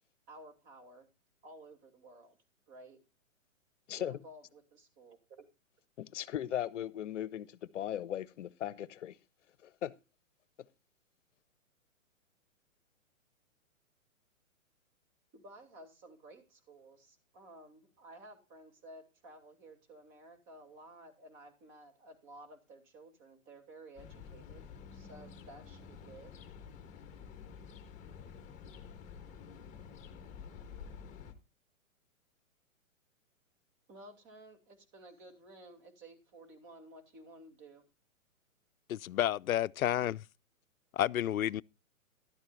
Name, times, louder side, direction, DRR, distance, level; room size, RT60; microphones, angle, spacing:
voice 1, 0.3-1.1 1.4-2.4 2.7-3.0 3.9-5.5 15.3-24.6 24.9-26.3 33.9-37.8, right 1 dB, 30° right, 2.8 m, -54 dB
voice 2, 3.9-4.2 6.0-9.2 9.6-9.9, left 11 dB, 60° left, 0.8 m, -38 dB
sound 1, 24.0-31.3, left 6 dB, 15° left, 1.4 m, -50 dB
voice 3, 38.9-40.3 40.9-41.6, left 12 dB, 80° left, 0.5 m, -30 dB
13.5 x 11.5 x 2.5 m
hypercardioid pair, 130°, 41 cm